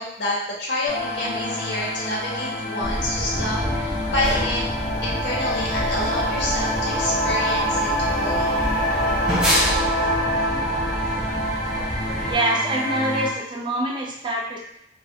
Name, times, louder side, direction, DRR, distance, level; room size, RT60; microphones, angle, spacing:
voice 1, 0.0-4.6 5.0-7.9 8.2-8.6, left 1 dB, 70° left, -4 dB, 0.7 m, -28 dB
sound 1, 0.9-13.3, equal, 40° left, 0.4 m, -26 dB
sound 2, 2.8-12.4, equal, 5° right, 0.7 m, -28 dB
Wind instrument woodwind instrument, 3.6-8.2, left 1 dB, 55° right, 0.9 m, -36 dB
voice 2, 12.2-14.6, right 1 dB, 25° right, -2 dB, 0.3 m, -25 dB
2.2 x 2.1 x 2.7 m, 0.78 s
head